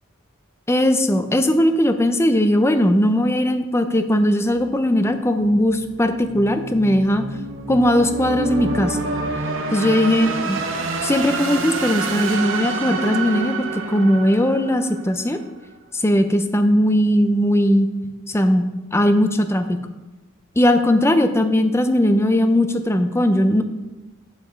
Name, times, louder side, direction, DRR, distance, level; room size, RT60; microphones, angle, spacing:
voice 1, 0.7-7.2 7.7-9.0 9.7-10.6 11.0-15.4 15.9-17.9 18.3-19.8 20.6-23.6, left 1 dB, 15° left, 8 dB, 0.5 m, -18 dB
sound 1, 4.4-15.4, right 3 dB, 70° right, 1.0 m, -28 dB
7.6 x 7.1 x 4.5 m, 1.1 s
head